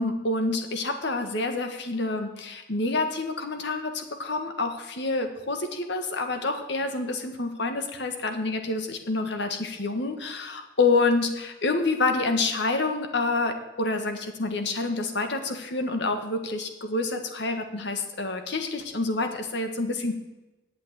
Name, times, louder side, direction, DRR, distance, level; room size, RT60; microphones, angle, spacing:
voice 1, 0.0-20.1, left 3 dB, 65° left, 6 dB, 1.7 m, -27 dB
9.0 x 8.2 x 9.5 m, 1.1 s
head